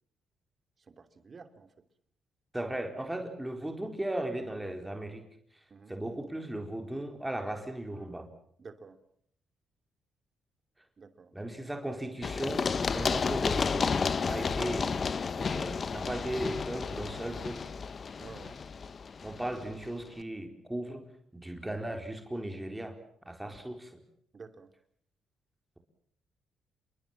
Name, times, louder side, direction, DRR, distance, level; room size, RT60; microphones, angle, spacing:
voice 1, 0.9-1.7 5.7-5.9 8.6-9.0 11.0-11.3 14.1-14.4 18.2-18.6 23.4-23.5 24.3-24.7, right 4 dB, 40° right, 10 dB, 3.1 m, -50 dB
voice 2, 2.5-5.3 5.9-8.3 11.3-14.0 14.2-15.0 15.4-17.7 19.2-21.1 21.3-23.0 23.3-24.0, right 1 dB, 10° right, 4 dB, 4.1 m, -37 dB
Run, 12.2-19.9, left 5 dB, 40° left, 1.3 m, -32 dB
28.5 x 22.5 x 7.4 m, 0.65 s
cardioid pair, 90°, 0 cm